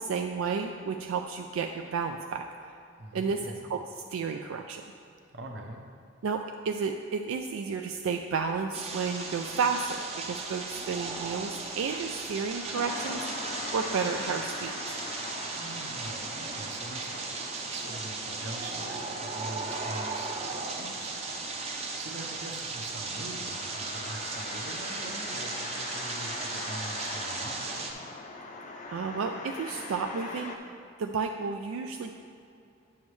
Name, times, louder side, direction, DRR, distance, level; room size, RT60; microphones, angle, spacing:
voice 1, 0.0-2.5 3.1-4.8 6.2-13.4 13.7-14.8 28.9-30.5 31.0-32.1, right 5 dB, 80° right, 4 dB, 0.4 m, -32 dB
voice 2, 3.0-3.7 5.3-5.8 15.5-28.1, right 2 dB, 55° right, 2 dB, 0.8 m, -43 dB
sound 1, 8.7-27.9, right 3 dB, 30° right, 0.6 m, -36 dB
sound 2, 12.7-30.6, left 3 dB, 35° left, 0.5 m, -42 dB
9.5 x 7.1 x 3.2 m, 2.5 s
head